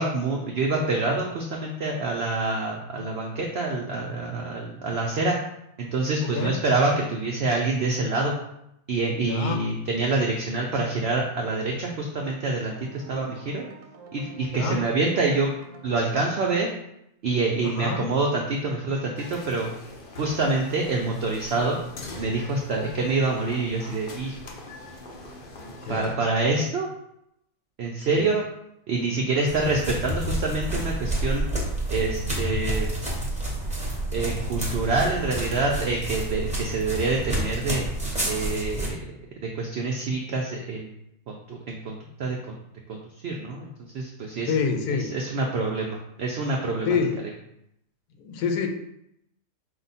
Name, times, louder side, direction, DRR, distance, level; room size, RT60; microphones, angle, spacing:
voice 1, 0.0-5.4 5.8-8.3 8.9-12.7 13.1-13.7 14.1-15.5 15.8-16.7 17.2-19.7 20.2-21.8 22.1-24.4 25.9-26.9 27.8-28.4 28.9-31.4 31.9-32.9 34.1-37.9 38.3-39.0 39.6-40.9 41.3-42.6 42.9-43.7 43.9-44.5 44.9-47.0, right 3 dB, 75° right, -1 dB, 0.5 m, -26 dB
voice 2, 6.2-6.5 9.2-9.6 14.5-14.8 17.6-18.0 25.9-26.2 28.1-28.4 44.5-45.1 46.8-47.2 48.2-48.7, left 5 dB, 80° left, 4 dB, 1.1 m, -27 dB
sound 1, 12.7-16.1, right 4 dB, 60° right, 0.9 m, -47 dB
sound 2, 19.2-26.1, left 2 dB, 65° left, 0.5 m, -42 dB
sound 3, 29.5-38.9, right 1 dB, 5° right, 0.7 m, -29 dB
4.9 x 2.2 x 4.0 m, 0.80 s
omnidirectional pair, 1.7 m